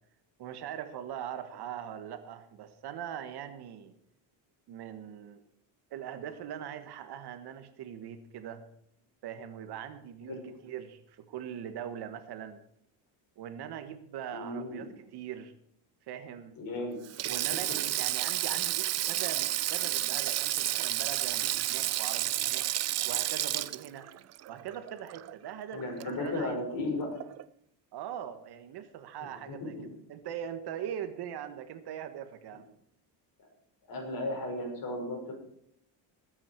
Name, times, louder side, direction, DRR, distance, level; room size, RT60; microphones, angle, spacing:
voice 1, 0.4-3.9 4.7-5.4 5.9-8.6 9.2-12.6 13.4-15.5 16.1-16.6 17.2-22.6 23.0-24.1 24.5-26.6 27.9-29.7 30.1-32.7, right 9 dB, 55° right, 9 dB, 1.4 m, -41 dB
voice 2, 14.3-14.8 16.6-17.0 17.2-17.8 25.7-27.2 29.2-29.9 33.9-35.3, left 2 dB, 45° left, 2 dB, 5.8 m, -35 dB
Sink (filling or washing), 17.0-25.5 25.8-26.0 27.2-27.4, right 14 dB, 35° right, 0.4 m, -31 dB
19.5 x 8.9 x 4.6 m, 0.72 s
cardioid pair, 130°, 46 cm